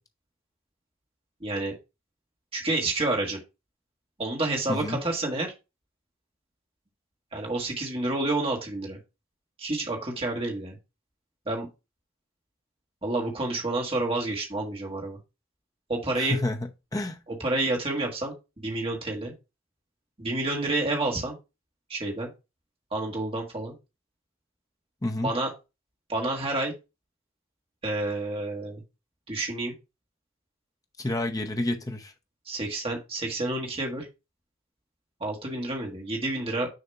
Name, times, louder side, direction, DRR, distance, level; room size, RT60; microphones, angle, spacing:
voice 1, 1.4-1.7 2.5-3.4 4.2-5.5 7.3-9.0 9.6-10.8 11.4-11.7 13.0-15.2 15.9-16.4 17.4-19.3 20.2-21.3 21.9-22.3 22.9-23.7 25.2-25.5 26.1-26.7 27.8-28.8 29.3-29.7 32.5-34.1 35.2-36.7, right 2 dB, 25° right, 1.6 m, -29 dB
voice 2, 4.7-5.0 16.2-17.2 25.0-25.3 31.0-32.1, left 1 dB, 15° left, 0.7 m, -29 dB
6.6 x 2.8 x 5.6 m
head